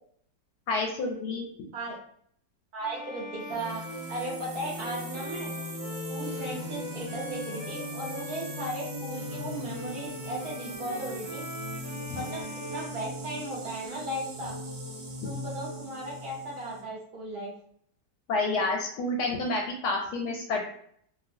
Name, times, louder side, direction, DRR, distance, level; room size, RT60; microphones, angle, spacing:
voice 1, 0.7-1.5 12.1-12.2 18.3-20.6, left 2 dB, 70° left, 0 dB, 1.0 m, -29 dB
voice 2, 2.7-3.8 4.1-5.5 6.1-11.4 12.0-14.5 15.2-17.5, right 1 dB, 60° right, -4 dB, 1.4 m, -36 dB
Bowed string instrument, 2.8-13.8, left 2 dB, 45° left, 0.6 m, -44 dB
sound 1, 3.4-16.8, equal, 80° right, 0.6 m, -38 dB
3.0 x 2.5 x 2.5 m, 0.64 s
omnidirectional pair, 2.0 m